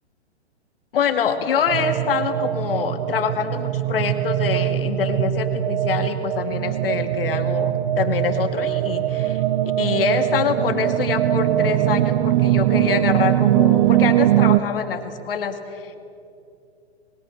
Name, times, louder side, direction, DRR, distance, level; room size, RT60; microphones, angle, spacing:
voice 1, 0.9-9.4 9.8-16.0, left 7 dB, 55° left, 7 dB, 2.2 m, -25 dB
sound 1, 1.7-14.6, right 13 dB, 40° right, 0.8 m, -21 dB
28.5 x 22.0 x 6.6 m, 2.6 s
figure-of-eight pair, 120°, 33 cm